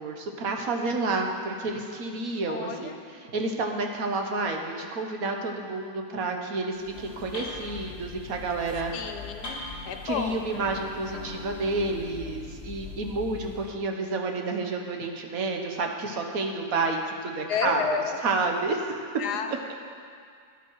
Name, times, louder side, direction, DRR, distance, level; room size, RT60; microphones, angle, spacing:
voice 1, 0.0-2.9 3.3-8.9 10.0-17.9 18.2-19.1, right 3 dB, 65° right, 3 dB, 1.4 m, -30 dB
voice 2, 2.5-3.0 8.9-10.5 17.5-18.2 19.2-19.7, left 6 dB, 85° left, 6 dB, 1.4 m, -31 dB
sound 1, 6.7-13.7, left 3 dB, 40° left, 1.7 m, -41 dB
13.5 x 9.9 x 4.6 m, 2.2 s
omnidirectional pair, 1.7 m